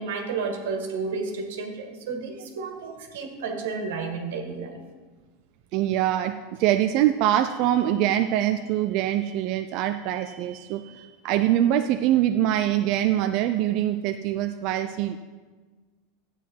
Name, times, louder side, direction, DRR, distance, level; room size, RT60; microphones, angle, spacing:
voice 1, 0.0-4.8, right 4 dB, 80° right, 4 dB, 1.9 m, -32 dB
voice 2, 5.7-15.2, right 12 dB, 40° right, 7 dB, 0.4 m, -24 dB
13.0 x 8.9 x 4.6 m, 1.4 s
supercardioid pair, 170°, 0 cm